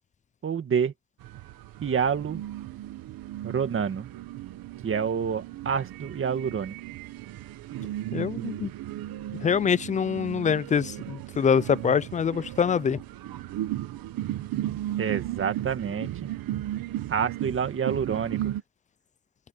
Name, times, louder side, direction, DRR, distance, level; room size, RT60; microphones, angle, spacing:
voice 1, 0.4-0.9 1.8-2.4 3.4-4.1 4.8-6.8 15.0-16.3 17.1-18.6, right 7 dB, 30° right, 2.0 m, -28 dB
sound 1, 1.2-18.6, right 13 dB, 60° right, 1.5 m, -35 dB
voice 2, 8.1-8.7 9.4-13.0, left 7 dB, 20° left, 0.4 m, -25 dB
cardioid pair, 145°, 39 cm